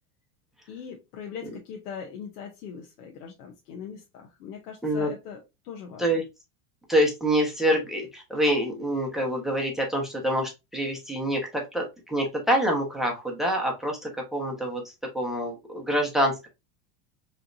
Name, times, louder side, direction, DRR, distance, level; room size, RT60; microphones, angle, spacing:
voice 1, 0.7-6.2, left 7 dB, 75° left, 1.0 m, -41 dB
voice 2, 6.9-14.8 15.1-16.5, equal, ahead, 1.0 m, -26 dB
3.8 x 3.3 x 2.6 m
supercardioid pair, 130°, 45 cm